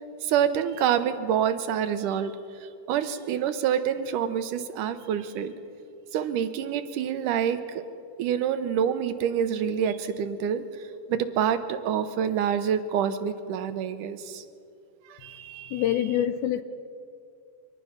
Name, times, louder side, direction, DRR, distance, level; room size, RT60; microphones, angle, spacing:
voice 1, 0.2-2.3 2.6-5.5 6.1-7.8 8.2-14.4 15.1-16.0, right 8 dB, 80° right, 10 dB, 2.4 m, -27 dB
voice 2, 15.7-16.6, left 11 dB, 80° left, 11 dB, 1.9 m, -25 dB
24.0 x 18.5 x 5.8 m, 2.5 s
omnidirectional pair, 3.8 m